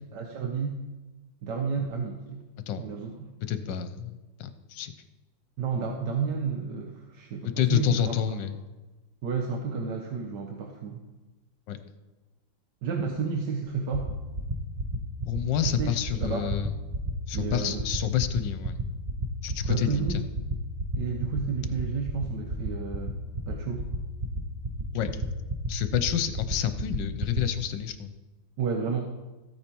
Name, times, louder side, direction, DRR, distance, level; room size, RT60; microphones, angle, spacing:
voice 1, 0.1-0.8 1.4-2.4 2.8-3.3 5.6-8.2 9.2-11.0 12.8-14.1 15.6-16.5 17.3-17.8 19.6-20.2 21.0-23.2 23.5-23.9 28.6-29.1, right 5 dB, 65° right, 2 dB, 1.6 m, -31 dB
voice 2, 3.5-4.9 7.6-8.5 11.7-11.8 15.3-16.7 17.3-18.8 19.4-20.2 24.9-25.1 25.7-28.1, left 11 dB, 75° left, 10 dB, 1.5 m, -28 dB
sound 1, 13.7-27.4, right 3 dB, 30° right, 0.6 m, -30 dB
15.0 x 8.7 x 4.6 m, 1.2 s
omnidirectional pair, 2.1 m